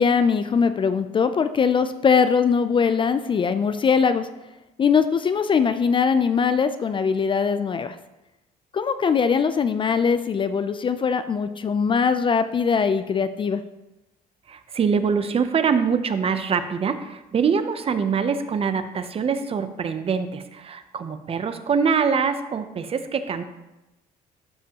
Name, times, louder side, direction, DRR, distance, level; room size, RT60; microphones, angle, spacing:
voice 1, 0.0-4.3 4.8-8.0 8.7-13.6, left 6 dB, 30° left, 11 dB, 0.4 m, -21 dB
voice 2, 14.5-23.4, right 6 dB, 35° right, 10 dB, 0.6 m, -24 dB
12.5 x 5.2 x 2.9 m, 0.99 s
cardioid pair, 110°, 17 cm